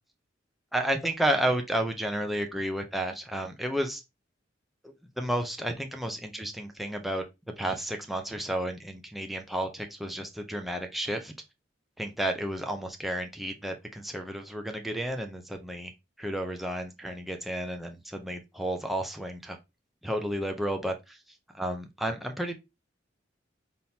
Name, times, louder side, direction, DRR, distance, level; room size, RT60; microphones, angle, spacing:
voice 1, 0.7-4.0 5.2-7.3 7.6-11.3 12.0-15.9 16.2-19.6 20.0-21.2 21.5-22.5, right 1 dB, ahead, 0.6 m, -32 dB
4.2 x 3.6 x 2.8 m
head